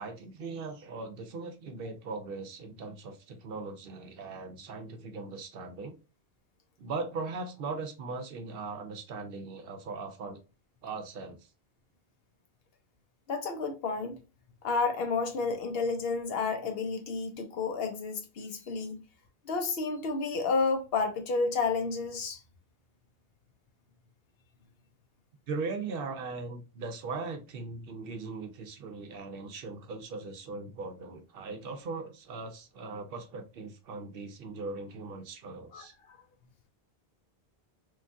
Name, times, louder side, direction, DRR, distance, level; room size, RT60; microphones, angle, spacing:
voice 1, 0.0-5.9 6.8-10.4 10.8-11.5 25.5-35.9, right 4 dB, 65° right, 0.7 m, -39 dB
voice 2, 13.3-14.2 14.6-19.0 19.5-22.4 35.7-35.8, left 4 dB, 70° left, 0.8 m, -31 dB
3.1 x 2.3 x 2.5 m
omnidirectional pair, 1.1 m